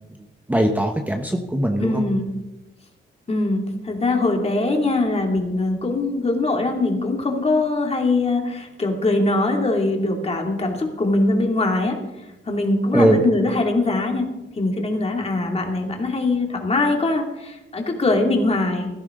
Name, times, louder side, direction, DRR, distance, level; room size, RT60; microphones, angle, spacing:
voice 1, 0.1-2.0 12.9-13.2, right 1 dB, 10° right, 4 dB, 1.0 m, -20 dB
voice 2, 1.8-2.3 3.3-12.0 12.5-18.9, left 2 dB, 30° left, 2 dB, 2.6 m, -22 dB
17.0 x 14.0 x 3.8 m, 1.0 s
wide cardioid pair, 130°, 20 cm